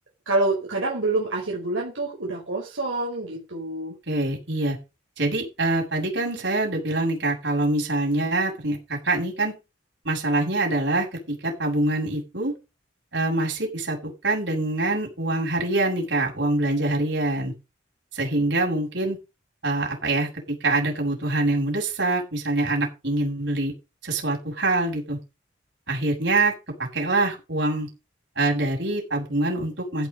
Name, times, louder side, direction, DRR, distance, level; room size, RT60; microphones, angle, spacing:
voice 1, 0.3-3.9, right 2 dB, 85° right, -3 dB, 5.0 m, -27 dB
voice 2, 4.1-4.8 5.2-9.5 10.0-12.5 13.1-17.5 18.1-19.2 19.6-23.7 24.0-25.2 25.9-26.5 26.9-27.9 28.4-30.1, right 2 dB, 70° right, 0 dB, 7.6 m, -25 dB
16.0 x 6.7 x 5.4 m, 0.28 s
head